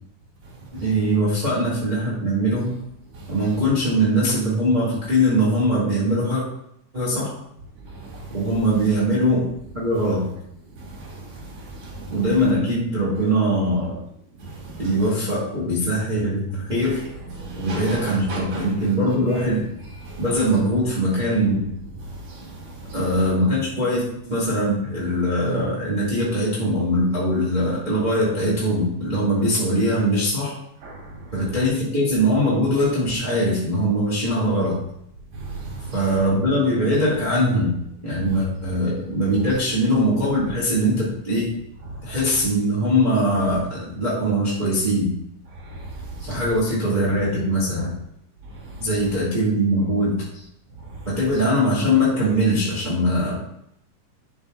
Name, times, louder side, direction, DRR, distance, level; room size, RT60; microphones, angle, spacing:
voice 1, 0.7-2.7 3.3-6.4 6.9-7.3 8.3-9.5 9.7-10.3 12.1-14.0 14.8-17.0 17.6-19.7 20.2-21.7 22.9-30.5 31.3-34.8 35.9-37.7 38.0-41.5 42.0-45.1 46.3-47.9 48.8-50.3 51.1-53.4, equal, 15° right, -7 dB, 1.9 m, -21 dB
voice 2, 11.7-12.2 14.5-15.1 16.8-18.9 19.3-19.4 20.0-20.2 22.3-22.5 22.9-23.3 30.8-31.0 35.3-36.3 38.3-38.4 39.4-39.6 42.2-42.3 46.2-46.3 48.9-49.0, right 2 dB, 45° right, -4 dB, 3.4 m, -35 dB
11.5 x 6.2 x 2.6 m, 0.75 s
omnidirectional pair, 4.0 m